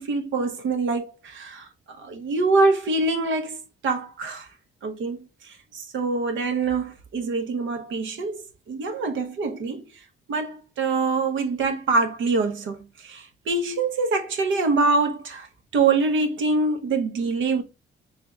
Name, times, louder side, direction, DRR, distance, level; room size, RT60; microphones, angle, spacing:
voice 1, 0.0-4.5 4.8-8.4 8.7-9.8 10.3-15.5 15.7-17.6, right 3 dB, 75° right, 0.9 m, -25 dB
3.3 x 2.9 x 3.4 m
cardioid pair, 90°, 20 cm